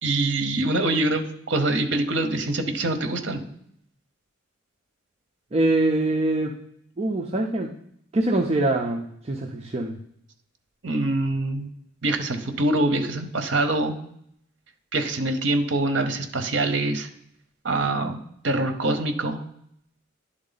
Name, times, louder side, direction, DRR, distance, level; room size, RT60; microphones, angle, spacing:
voice 1, 0.0-3.4 10.8-11.7 12.0-13.9 14.9-17.1 17.6-18.2 18.4-19.4, right 2 dB, 60° right, 6 dB, 0.8 m, -24 dB
voice 2, 5.5-6.5 7.0-7.7 8.1-10.0, right 2 dB, 30° right, 2 dB, 0.4 m, -24 dB
10.5 x 3.7 x 4.0 m, 0.71 s
head